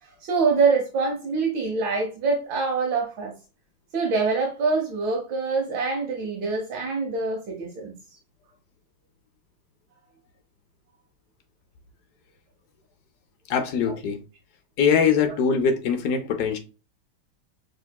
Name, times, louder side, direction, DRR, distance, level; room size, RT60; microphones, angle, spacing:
voice 1, 0.0-3.3 3.9-7.9 15.2-15.3, right 4 dB, 80° right, 1.6 m, -25 dB
voice 2, 13.5-14.2 14.8-16.6, left 6 dB, 70° left, 1.0 m, -22 dB
6.3 x 2.9 x 2.2 m
omnidirectional pair, 2.1 m